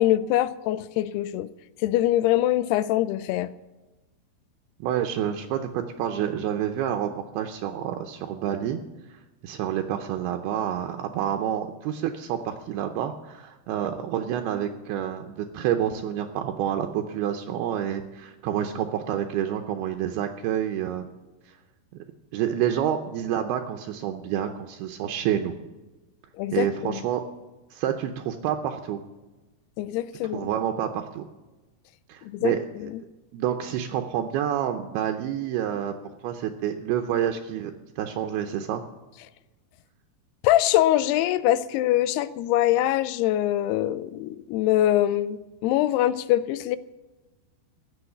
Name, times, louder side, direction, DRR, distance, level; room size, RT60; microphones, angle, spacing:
voice 1, 0.0-1.5 1.8-3.5 26.4-27.0 29.8-30.5 32.2-32.5 40.4-46.8, left 13 dB, 85° left, 15 dB, 2.6 m, -23 dB
voice 2, 4.8-7.1 7.3-8.8 9.1-9.2 9.4-21.1 22.3-25.6 26.5-27.2 27.7-29.0 30.3-31.3 32.1-32.6 33.3-38.8, right 10 dB, 80° right, 5 dB, 2.6 m, -28 dB
15.0 x 6.4 x 9.7 m, 1.2 s
omnidirectional pair, 4.6 m